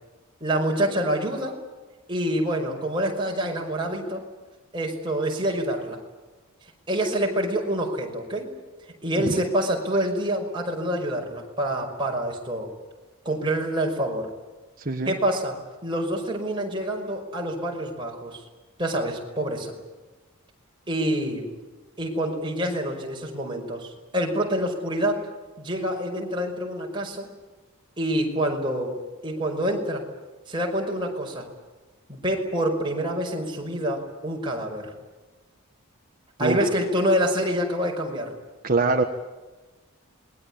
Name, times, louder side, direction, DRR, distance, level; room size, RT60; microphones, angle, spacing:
voice 1, 0.4-1.6 2.1-4.2 4.7-6.0 6.9-8.5 9.0-12.7 13.3-14.3 15.1-15.5 15.8-18.4 18.8-19.7 20.9-21.5 22.0-25.2 25.6-27.3 28.0-29.0 29.2-30.0 30.5-31.5 32.1-34.9 36.4-38.3, right 1 dB, 20° right, 0 dB, 5.3 m, -26 dB
voice 2, 14.8-15.1 36.4-36.6 38.6-39.0, right 3 dB, 40° right, 5 dB, 1.4 m, -23 dB
27.0 x 21.5 x 8.8 m, 1.2 s
head